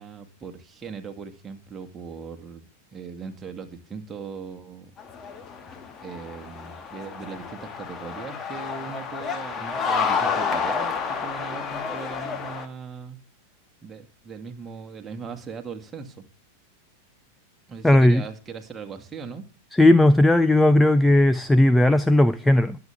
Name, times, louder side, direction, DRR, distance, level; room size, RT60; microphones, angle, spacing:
voice 1, 0.0-5.0 6.0-13.2 13.8-16.3 17.7-19.4, right 5 dB, 20° right, 5 dB, 2.2 m, -39 dB
sound 1, 5.0-12.7, left 5 dB, 25° left, 1.9 m, -30 dB
sound 2, 6.9-12.6, left 3 dB, 40° left, 6.0 m, -52 dB
voice 2, 17.8-18.2 19.7-22.8, left 1 dB, 5° left, 11 dB, 0.6 m, -16 dB
21.5 x 8.4 x 3.5 m, 0.34 s
figure-of-eight pair, 90°, 0 cm